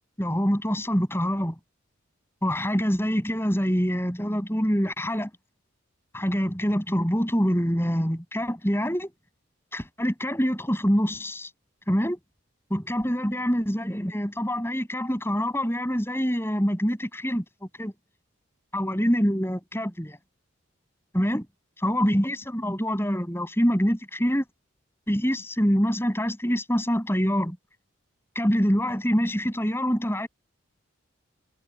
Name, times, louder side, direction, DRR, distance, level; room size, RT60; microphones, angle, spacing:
voice 1, 0.2-1.6 2.4-5.3 6.1-9.1 9.7-11.5 11.9-12.2 12.7-17.9 18.7-20.2 21.1-21.5 21.8-24.4 25.1-27.6 28.3-30.3, equal, 10° left, 6.6 m, -25 dB
head